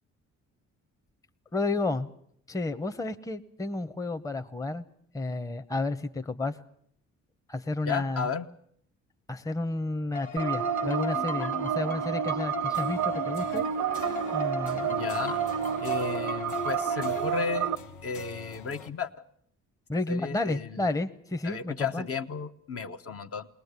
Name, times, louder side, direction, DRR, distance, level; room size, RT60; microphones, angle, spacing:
voice 1, 1.5-2.1 2.5-4.8 5.1-6.6 7.5-8.3 9.3-13.7 14.3-14.9 19.9-22.0, left 2 dB, 10° left, 8 dB, 0.8 m, -31 dB
voice 2, 7.9-8.5 11.4-11.5 14.9-15.4 15.8-17.7 18.0-19.1 20.1-20.9 21.4-23.5, left 5 dB, 50° left, 7 dB, 1.0 m, -33 dB
sound 1, 10.1-17.3, left 3 dB, 25° left, 1.2 m, -37 dB
sound 2, 10.4-17.8, right 9 dB, 85° right, 0.8 m, -30 dB
sound 3, 12.7-18.9, left 5 dB, 80° left, 1.7 m, -45 dB
21.0 x 19.5 x 8.2 m, 0.65 s
cardioid pair, 90°, 30 cm